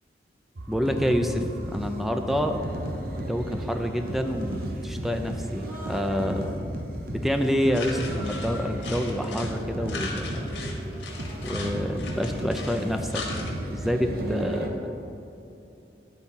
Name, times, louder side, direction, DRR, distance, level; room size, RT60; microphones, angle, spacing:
sound 1, 0.6-14.7, right 1 dB, 55° right, 0.9 m, -34 dB
voice 1, 0.7-2.6 3.3-6.5 7.1-10.6 11.4-13.3 13.7-15.0, equal, ahead, 6 dB, 0.4 m, -28 dB
Human voice, 2.2-3.1 3.7-4.8 5.5-6.6 7.5-12.8, equal, 15° right, 1.6 m, -47 dB
sound 2, 7.7-9.6 9.9-13.5, left 4 dB, 85° left, 1.5 m, -38 dB
10.5 x 4.0 x 5.6 m, 2.9 s
head